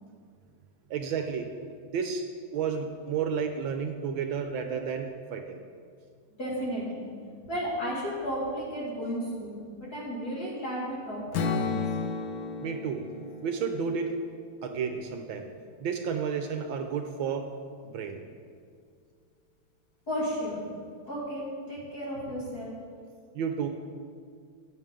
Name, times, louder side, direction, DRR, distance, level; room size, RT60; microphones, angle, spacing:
voice 1, 0.9-1.5 1.9-2.2 2.5-5.6 12.6-13.0 13.4-14.2 14.6-15.5 15.8-17.5 17.9-18.2 23.3-23.7, right 6 dB, 70° right, 5 dB, 1.4 m, -31 dB
voice 2, 6.4-7.1 7.5-11.8 20.1-20.7 21.1-22.7, equal, 45° left, -7 dB, 2.8 m, -33 dB
Strum, 11.3-15.5, left 4 dB, 70° left, 1.4 m, -34 dB
14.0 x 9.2 x 3.7 m, 2.1 s
omnidirectional pair, 2.4 m